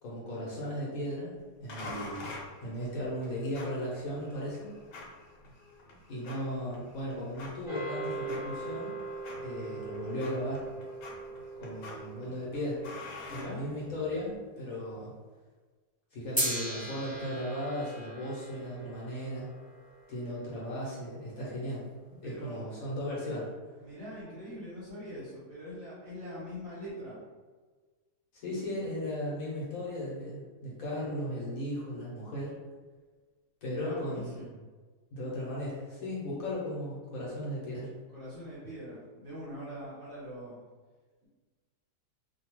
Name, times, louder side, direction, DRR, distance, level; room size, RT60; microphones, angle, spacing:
voice 1, 0.0-2.3 2.6-4.7 6.1-8.9 9.4-10.7 11.6-12.8 13.3-15.1 16.1-19.5 20.1-21.8 22.1-23.5 28.3-32.5 33.6-34.4 35.1-37.9, equal, 60° left, -6 dB, 1.2 m, -36 dB
sound 1, 1.7-14.2, left 2 dB, 80° left, 1.2 m, -47 dB
sound 2, 7.7-14.1 16.4-20.8, right 2 dB, 5° left, 0.7 m, -39 dB
voice 2, 13.3-13.6 22.2-22.5 23.8-27.2 33.7-34.5 38.1-40.6, equal, 55° right, -8 dB, 0.8 m, -43 dB
2.8 x 2.2 x 3.0 m, 1.4 s
omnidirectional pair, 1.8 m